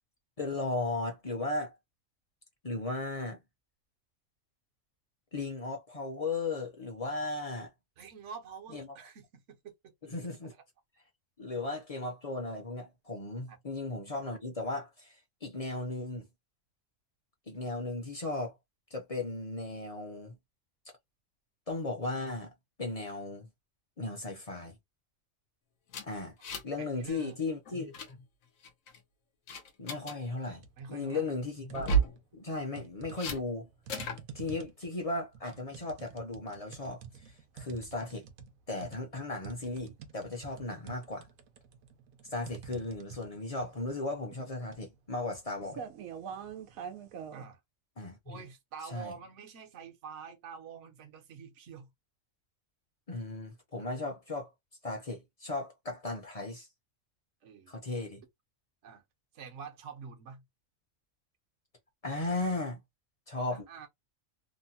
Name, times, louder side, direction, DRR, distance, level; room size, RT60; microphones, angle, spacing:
voice 1, 0.4-1.7 2.6-3.4 5.3-7.7 8.7-8.9 10.0-10.5 11.4-16.3 17.5-18.5 18.9-20.4 21.7-22.5 22.8-23.5 24.0-24.8 26.0-26.4 26.6-28.2 29.8-30.6 30.9-32.0 32.3-33.7 34.3-38.3 38.7-41.3 42.3-45.8 48.0-48.4 48.9-49.1 53.1-54.5 54.8-56.7 57.7-58.2 62.0-62.8 63.3-63.7, left 2 dB, 35° left, 0.6 m, -36 dB
voice 2, 8.0-9.9 10.5-10.6 13.5-13.6 26.4-27.4 30.8-31.3 47.3-47.6 48.3-51.9 53.8-53.9 57.4-57.7 58.8-59.0 59.3-60.4 63.5-63.9, right 6 dB, 65° right, 1.1 m, -47 dB
sound 1, 25.9-26.8 27.1-27.3 27.7-28.1 28.6-29.0 29.5-30.2 31.7-32.2 33.2-33.4 33.9-34.2, right 4 dB, 80° left, 1.2 m, -32 dB
sound 2, 30.5-30.9 31.3-32.2 32.8-47.4, right 7 dB, 90° right, 1.1 m, -46 dB
3.0 x 2.1 x 2.6 m
omnidirectional pair, 1.4 m